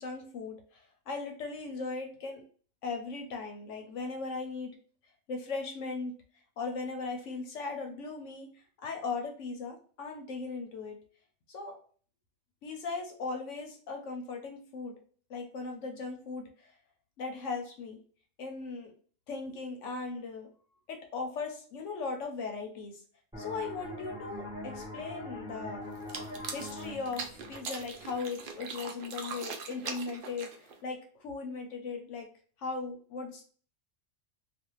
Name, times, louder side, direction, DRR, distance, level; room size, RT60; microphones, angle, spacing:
voice 1, 0.0-2.4 2.8-4.7 5.3-6.1 6.6-11.0 11.5-11.8 12.6-14.9 15.3-16.7 17.2-18.0 18.4-18.9 19.3-20.5 20.9-23.0 23.4-25.9 26.5-32.3 32.6-33.4, left 4 dB, 65° left, 3 dB, 0.9 m, -38 dB
sound 1, 23.3-28.7, left 1 dB, 5° right, 0.6 m, -43 dB
sound 2, 25.9-30.8, right 5 dB, 80° right, 0.4 m, -41 dB
2.5 x 2.4 x 2.9 m, 0.43 s
omnidirectional pair, 1.5 m